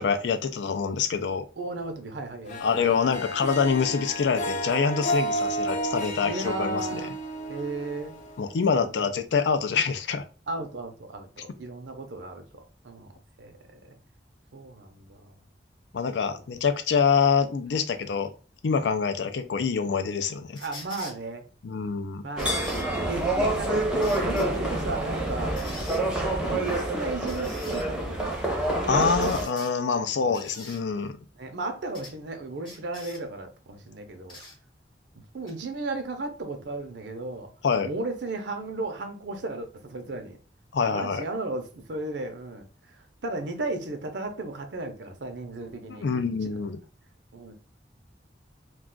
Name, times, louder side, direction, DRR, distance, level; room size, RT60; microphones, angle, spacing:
voice 1, 0.0-1.4 2.6-7.0 8.4-10.2 15.9-18.3 18.6-20.6 21.6-22.2 28.8-31.2 37.6-37.9 40.7-41.2 45.9-46.8, left 5 dB, 80° left, 0.4 m, -25 dB
voice 2, 1.6-2.8 6.2-7.1 7.5-8.1 8.7-9.0 10.5-13.8 14.5-15.3 16.2-16.4 18.8-18.9 20.6-21.4 22.2-22.8 23.1-23.9 24.2-25.6 26.4-28.4 30.1-30.4 31.4-34.4 35.3-37.5 37.8-40.4 40.9-46.1 47.3-47.5, right 2 dB, 80° right, 0.6 m, -35 dB
Harp, 2.5-8.8, equal, 45° left, 0.7 m, -32 dB
sound 1, 20.5-21.2 22.4-22.9 24.0-24.5 25.6-26.0 27.3-27.9 29.0-29.7 30.3-30.8 31.9-32.1 32.6-33.2 34.3-34.6 35.5-35.6, left 2 dB, 30° left, 0.9 m, -44 dB
sound 2, 22.4-29.4, right 1 dB, 5° right, 0.6 m, -27 dB
2.4 x 2.3 x 3.6 m
head